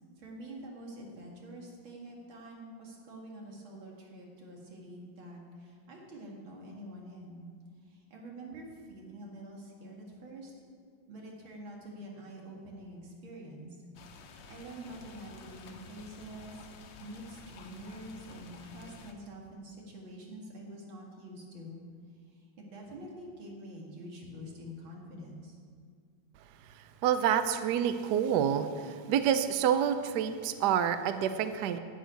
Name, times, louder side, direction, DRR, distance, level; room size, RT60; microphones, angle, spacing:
voice 1, 0.2-7.4 7.8-10.5 11.1-13.8 14.2-16.7 17.0-21.8 22.1-25.6, right 1 dB, 85° right, -1 dB, 2.9 m, -46 dB
sound 1, 14.0-19.1, left 4 dB, 70° left, 1.6 m, -51 dB
voice 2, 26.7-31.8, right 9 dB, 70° right, 10 dB, 1.1 m, -28 dB
12.0 x 6.4 x 9.2 m, 2.1 s
omnidirectional pair, 2.1 m